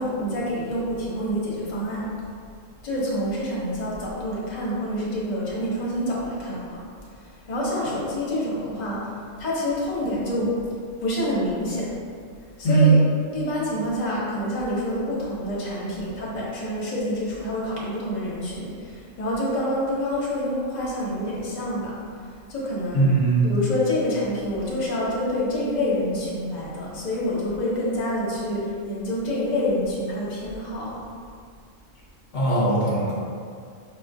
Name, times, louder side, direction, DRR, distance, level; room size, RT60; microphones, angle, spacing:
voice 1, 0.0-2.1 2.8-6.8 7.2-9.1 9.4-10.5 11.0-11.9 12.6-12.9 13.3-22.0 22.5-23.1 23.4-31.0, left 1 dB, 35° left, -7 dB, 0.9 m, -27 dB
voice 2, 22.9-23.5 32.3-33.2, right 3 dB, 70° left, -6 dB, 1.0 m, -19 dB
5.3 x 2.4 x 2.5 m, 2.2 s
omnidirectional pair, 1.4 m